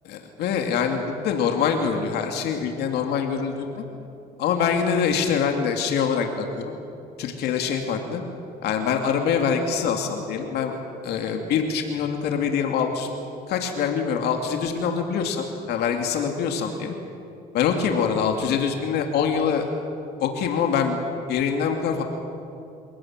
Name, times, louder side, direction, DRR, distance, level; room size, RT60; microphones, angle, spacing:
voice 1, 0.0-3.8 4.4-6.8 7.2-8.2 8.6-10.8 11.0-13.1 13.5-17.0 17.5-19.7 20.2-21.0 21.3-22.0, left 6 dB, 75° left, 4 dB, 2.6 m, -24 dB
28.0 x 18.0 x 9.0 m, 2.7 s
cardioid pair, 110°, 17 cm